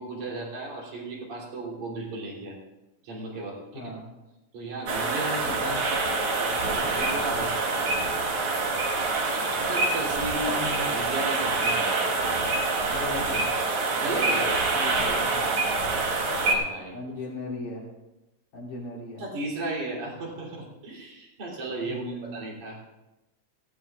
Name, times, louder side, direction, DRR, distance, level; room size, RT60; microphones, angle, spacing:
voice 1, 0.0-2.6 3.0-3.9 4.5-5.9 6.4-8.0 9.6-12.1 14.0-14.5 16.4-17.0 19.2-22.8, right 2 dB, 75° right, -3 dB, 4.9 m, -35 dB
voice 2, 3.7-4.1 5.4-5.8 10.5-10.9 12.9-13.5 14.7-15.7 16.9-17.9 18.5-19.2 21.8-22.4, left 2 dB, 80° left, -3 dB, 4.8 m, -38 dB
sound 1, 4.9-16.5, right 3 dB, 50° right, 2.2 m, -26 dB
18.0 x 16.0 x 2.5 m, 1.0 s
omnidirectional pair, 3.4 m